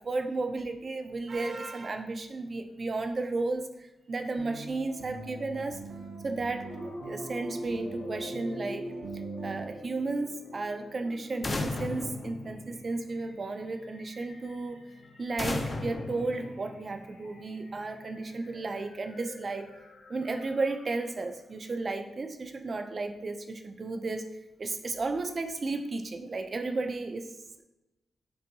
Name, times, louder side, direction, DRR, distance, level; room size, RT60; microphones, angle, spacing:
voice 1, 0.0-5.8 6.2-14.8 15.2-19.8 20.1-24.3 24.6-27.6, right 3 dB, 40° right, 6 dB, 0.4 m, -34 dB
sound 1, 4.4-9.7, right 3 dB, 85° right, 0.7 m, -43 dB
sound 2, 6.6-21.2, left 1 dB, 85° left, 0.6 m, -45 dB
sound 3, 11.4-13.2 15.4-17.1, left 2 dB, 30° left, 0.5 m, -35 dB
5.4 x 2.6 x 2.6 m, 0.96 s
cardioid pair, 100°, 0 cm